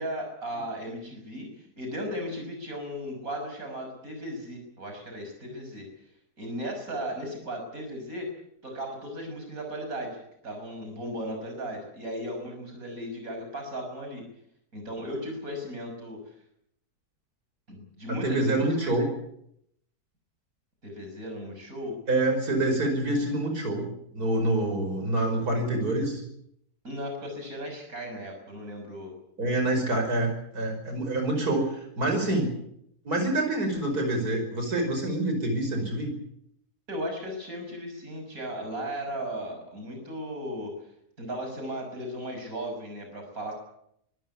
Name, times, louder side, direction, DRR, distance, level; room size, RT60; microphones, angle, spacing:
voice 1, 0.0-5.9 6.4-8.3 8.6-14.2 14.7-16.3 17.7-19.0 20.8-21.9 26.8-29.1 36.9-40.7 41.2-43.6, equal, 65° right, 3 dB, 6.6 m, -36 dB
voice 2, 18.1-19.1 22.1-23.9 24.1-26.2 29.4-32.5 33.0-36.1, right 1 dB, 80° right, 4 dB, 5.7 m, -26 dB
24.0 x 14.5 x 9.6 m, 0.73 s
omnidirectional pair, 1.6 m